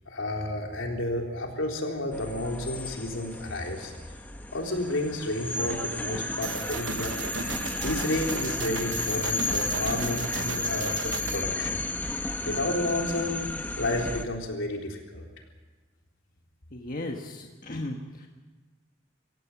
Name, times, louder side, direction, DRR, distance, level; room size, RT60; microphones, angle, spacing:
voice 1, 0.1-3.9 4.5-7.2 7.8-11.8 12.4-13.5 13.8-15.3, left 1 dB, 75° left, 1 dB, 3.8 m, -31 dB
sound 1, 2.1-14.2, left 2 dB, 10° left, 1.1 m, -33 dB
sound 2, 6.4-11.4, right 6 dB, 75° right, 0.8 m, -36 dB
voice 2, 16.7-18.3, left 1 dB, 45° left, 2 dB, 1.5 m, -36 dB
24.0 x 16.5 x 7.3 m, 1.3 s
head